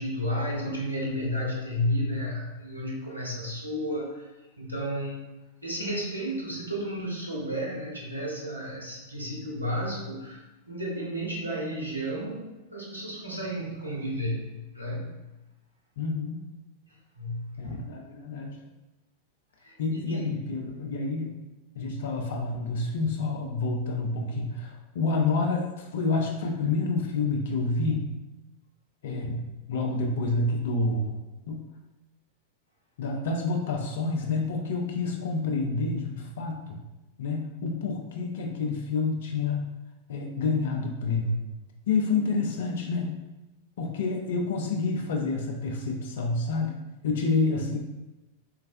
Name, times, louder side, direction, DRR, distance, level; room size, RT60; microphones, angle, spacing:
voice 1, 0.0-4.3 4.6-5.2 5.6-10.4 10.7-15.2 17.2-17.8 19.6-19.7 20.1-20.4, equal, 85° right, -4 dB, 0.6 m, -32 dB
voice 2, 16.0-16.5 17.6-18.6 19.8-21.4 21.7-28.1 29.0-31.2 31.5-31.7 33.0-36.8 37.2-39.7 40.1-41.4 41.9-43.2 43.8-47.8, left 3 dB, 60° left, 1 dB, 0.4 m, -28 dB
3.2 x 2.3 x 2.5 m, 1.0 s
figure-of-eight pair, 90°, 0 cm